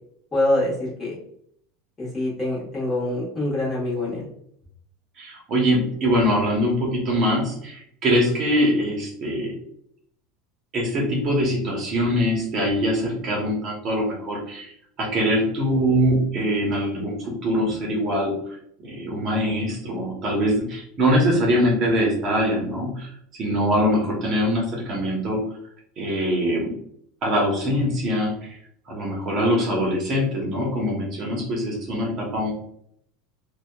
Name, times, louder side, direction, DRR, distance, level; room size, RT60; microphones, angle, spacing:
voice 1, 0.3-1.2 2.0-4.3, left 1 dB, 20° left, -7 dB, 1.3 m, -25 dB
voice 2, 5.2-9.5 10.7-14.7 15.0-18.3 18.8-23.1 23.4-25.4 26.0-26.7 27.2-28.6 28.9-32.5, equal, 40° right, -2 dB, 0.8 m, -23 dB
2.7 x 2.2 x 2.2 m, 0.68 s
supercardioid pair, 130°, 0 cm